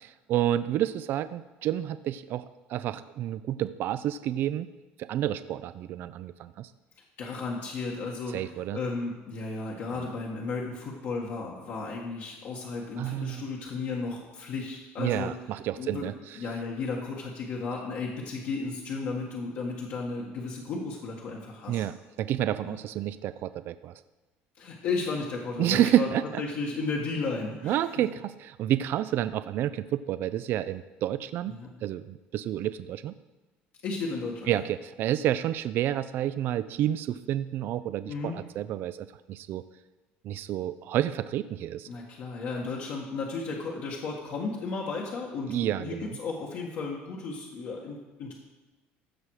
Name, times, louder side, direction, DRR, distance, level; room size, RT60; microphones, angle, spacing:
voice 1, 0.0-2.4 2.7-4.7 5.0-6.7 8.3-8.8 13.0-13.4 15.0-16.1 21.7-23.9 25.6-26.4 27.6-33.1 34.5-39.6 40.2-41.9 45.5-46.2, right 12 dB, 55° right, 14 dB, 0.4 m, -29 dB
voice 2, 7.2-15.3 15.8-16.1 16.4-21.8 22.6-22.8 24.6-26.1 26.4-27.8 31.5-31.7 33.8-34.5 38.1-38.4 41.9-48.3, left 4 dB, 60° left, -3 dB, 1.8 m, -34 dB
15.5 x 6.1 x 4.9 m, 1.1 s
cardioid pair, 125°, 4 cm